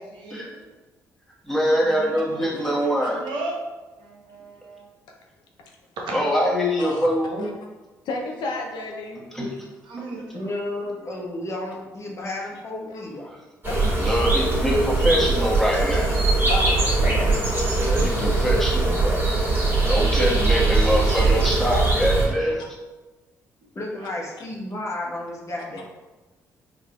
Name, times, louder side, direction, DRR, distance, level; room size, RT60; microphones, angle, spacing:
voice 1, 0.2-0.6 1.7-3.5 4.0-4.8 6.0-6.2 9.8-10.9 19.8-22.0 24.0-24.3, right 2 dB, 70° right, -2 dB, 0.8 m, -38 dB
voice 2, 1.4-3.2 6.1-7.5 9.3-9.6 14.0-16.2 17.8-22.6, equal, 5° left, -4 dB, 1.2 m, -24 dB
voice 3, 8.0-9.2 13.7-14.0 14.5-14.6 16.5-17.4, left 2 dB, 65° left, 0 dB, 0.5 m, -31 dB
voice 4, 10.3-13.3 23.7-25.8, left 1 dB, 35° left, -2 dB, 1.0 m, -32 dB
sound 1, 13.6-22.3, right 3 dB, 25° right, 1.5 m, -21 dB
4.8 x 2.5 x 2.3 m, 1.2 s
hypercardioid pair, 45°, 8 cm